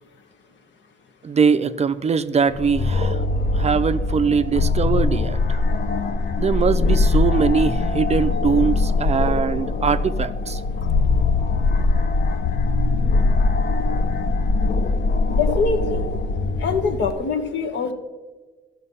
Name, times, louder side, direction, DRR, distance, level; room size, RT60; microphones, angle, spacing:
voice 1, 1.2-3.2 3.5-5.6 6.4-10.6, right 6 dB, 35° right, 12 dB, 0.4 m, -21 dB
sound 1, 2.5-17.1, left 3 dB, 50° left, 0.7 m, -21 dB
voice 2, 15.4-16.1 16.6-17.9, left 5 dB, 65° left, 5 dB, 1.3 m, -23 dB
13.0 x 5.9 x 5.5 m, 1.3 s
cardioid pair, 90°, 20 cm